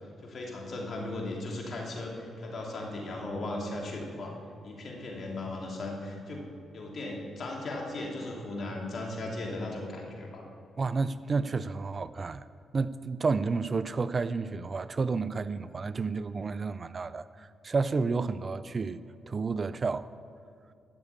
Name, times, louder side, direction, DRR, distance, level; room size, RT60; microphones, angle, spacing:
voice 1, 0.2-4.3 4.6-6.4 6.7-10.5, left 2 dB, 55° left, 3.0 m, -37 dB
voice 2, 10.8-12.4 12.7-20.1, right 4 dB, 40° right, 0.4 m, -31 dB
13.5 x 6.9 x 8.4 m
cardioid pair, 75°, 0 cm